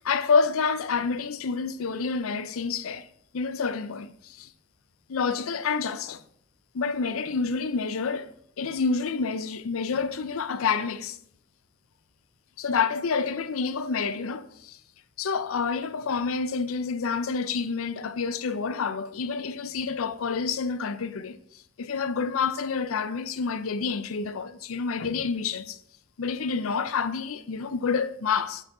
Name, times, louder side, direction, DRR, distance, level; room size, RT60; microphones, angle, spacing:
voice 1, 0.0-3.1 3.3-4.1 4.4-4.5 5.1-6.2 6.7-8.3 8.6-11.2 12.6-14.8 15.2-21.4 21.8-25.8 26.2-28.6, left 5 dB, 90° left, 0.5 m, -28 dB
8.7 x 4.7 x 3.6 m
head